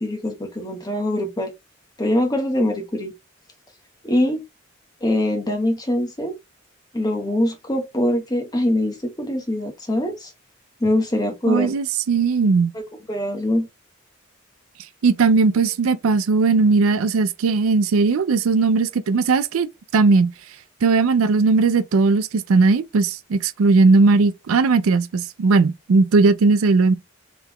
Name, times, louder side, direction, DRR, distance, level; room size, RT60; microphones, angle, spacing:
voice 1, 0.0-1.5 2.0-3.1 4.0-4.4 5.0-6.4 6.9-10.3 10.8-11.7 12.7-12.8 13.1-13.7, left 1 dB, 20° left, 1.0 m, -23 dB
voice 2, 11.5-12.7 15.0-19.7 19.9-20.3 20.8-26.9, right 4 dB, 85° right, 0.4 m, -18 dB
3.8 x 3.3 x 2.9 m
head